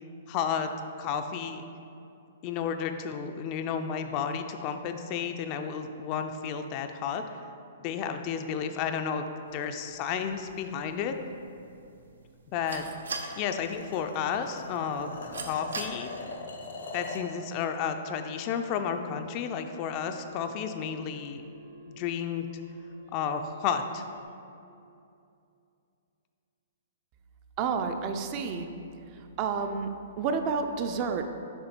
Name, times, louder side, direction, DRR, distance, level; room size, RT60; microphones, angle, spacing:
voice 1, 0.3-0.7 1.0-1.7 2.4-7.2 7.8-9.2 9.5-11.1 12.5-12.9 13.4-15.1 15.5-16.1 16.9-21.4 21.9-22.5 23.1-24.0, left 7 dB, 35° left, 7 dB, 0.3 m, -32 dB
sound 1, 9.5-15.9, right 4 dB, 90° right, 0.5 m, -43 dB
sound 2, 13.0-17.3, left 3 dB, 80° left, 0.7 m, -41 dB
sound 3, 18.2-24.2, left 1 dB, 55° right, 0.9 m, -50 dB
voice 2, 27.6-28.7 29.1-29.9 30.2-31.3, right 5 dB, 35° right, 6 dB, 0.4 m, -30 dB
6.7 x 3.2 x 4.4 m, 2.6 s
hypercardioid pair, 145°, 0 cm